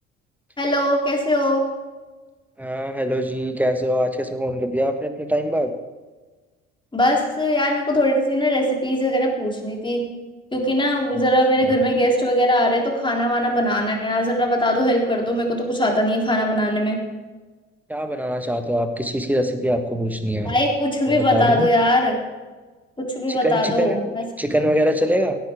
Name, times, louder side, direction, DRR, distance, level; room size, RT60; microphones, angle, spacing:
voice 1, 0.6-1.7 6.9-10.0 10.5-17.0 20.5-22.2 23.0-24.2, equal, 15° left, 0 dB, 3.6 m, -20 dB
voice 2, 2.6-5.7 11.6-11.8 17.9-20.5 21.1-21.7 23.3-24.0 24.4-25.4, equal, 5° right, 7 dB, 1.6 m, -23 dB
17.0 x 10.5 x 3.8 m, 1.3 s
figure-of-eight pair, 55°, 36 cm